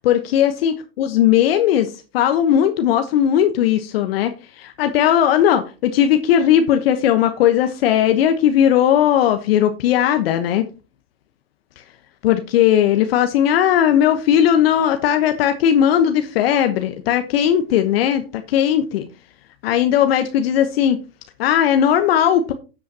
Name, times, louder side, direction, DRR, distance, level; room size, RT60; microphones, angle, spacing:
voice 1, 0.0-10.6 12.2-19.1 19.6-21.0 21.4-22.5, left 10 dB, 70° left, 8 dB, 1.1 m, -17 dB
13.5 x 8.3 x 2.9 m, 0.32 s
hypercardioid pair, 105°, 31 cm